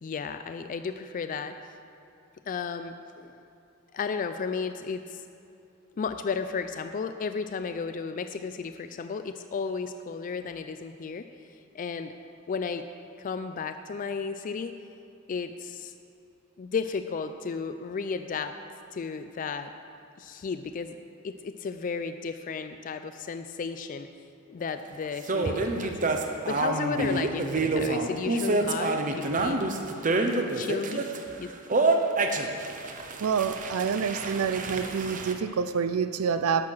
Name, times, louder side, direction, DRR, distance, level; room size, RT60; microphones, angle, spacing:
voice 1, 0.0-1.6 2.5-3.3 3.9-5.2 6.0-11.3 11.7-12.1 12.5-12.8 13.2-14.8 15.3-15.9 16.6-18.5 18.9-19.7 20.2-21.0 21.2-24.1 24.5-29.6 30.5-31.1 31.4-31.5, left 5 dB, 40° left, 9 dB, 0.3 m, -33 dB
sound 1, 25.3-31.2 31.7-35.3, right 3 dB, 35° right, 0.7 m, -27 dB
voice 2, 33.2-36.7, right 6 dB, 75° right, 11 dB, 0.4 m, -27 dB
11.5 x 6.5 x 6.1 m, 2.7 s
head